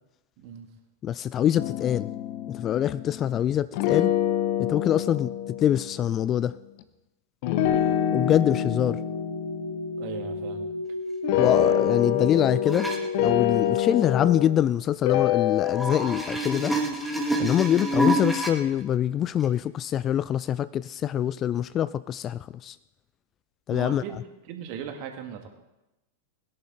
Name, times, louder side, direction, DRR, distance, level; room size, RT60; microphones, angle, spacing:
voice 1, 0.4-0.7 10.0-10.7 23.7-24.2 24.5-25.5, right 8 dB, 45° right, 4 dB, 2.0 m, -37 dB
voice 2, 1.0-2.1 2.5-4.1 4.6-6.6 8.1-9.0 11.4-12.9 13.2-16.7 17.4-22.8 23.7-24.0, left 10 dB, 30° left, 18 dB, 0.3 m, -24 dB
sound 1, 1.5-3.4 3.7-6.2 7.4-10.8 11.2-14.7 15.0-16.3, left 11 dB, 45° left, 0.8 m, -27 dB
sound 2, 8.2-13.8, left 1 dB, 85° left, 2.2 m, -33 dB
sound 3, 12.7-13.0 15.6-18.5 19.4-19.5, equal, ahead, 2.1 m, -27 dB
21.0 x 11.0 x 3.8 m, 0.97 s
figure-of-eight pair, 90°, 0 cm